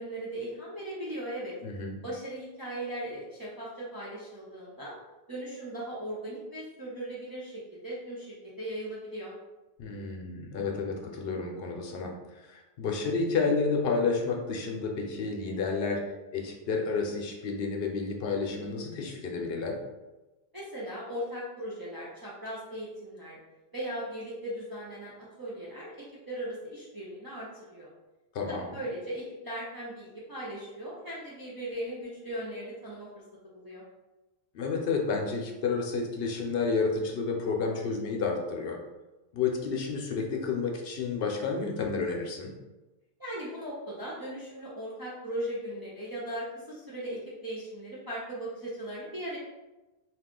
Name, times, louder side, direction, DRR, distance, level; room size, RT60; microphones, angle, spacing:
voice 1, 0.0-1.5 2.0-4.9 5.3-9.3 20.5-23.4 23.7-25.9 26.3-27.9 28.5-33.1 33.4-33.8 43.2-49.4, right 1 dB, 25° right, -7 dB, 0.5 m, -38 dB
voice 2, 1.6-2.0 9.8-16.0 16.3-19.8 28.3-28.7 34.5-38.8 39.3-42.5, left 4 dB, 70° left, 1 dB, 0.8 m, -30 dB
2.4 x 2.3 x 3.6 m, 1.1 s
omnidirectional pair, 1.0 m